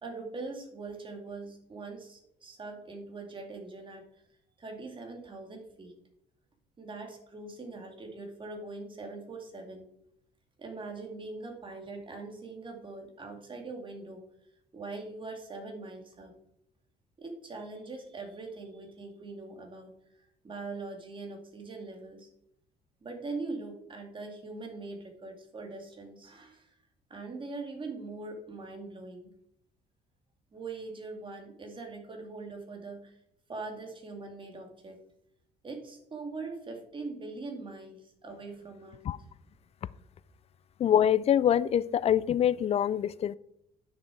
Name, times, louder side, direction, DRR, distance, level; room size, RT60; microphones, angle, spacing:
voice 1, 0.0-4.0 4.6-5.9 6.8-9.9 10.6-14.3 14.7-16.3 17.2-19.9 20.4-22.3 23.0-26.7 27.1-29.3 30.5-33.2 33.5-35.0 35.6-39.0, right 3 dB, 30° right, 3 dB, 2.3 m, -42 dB
voice 2, 40.8-43.4, left 9 dB, 40° left, 19 dB, 0.4 m, -25 dB
9.5 x 6.5 x 4.7 m, 0.77 s
cardioid pair, 110°, 17 cm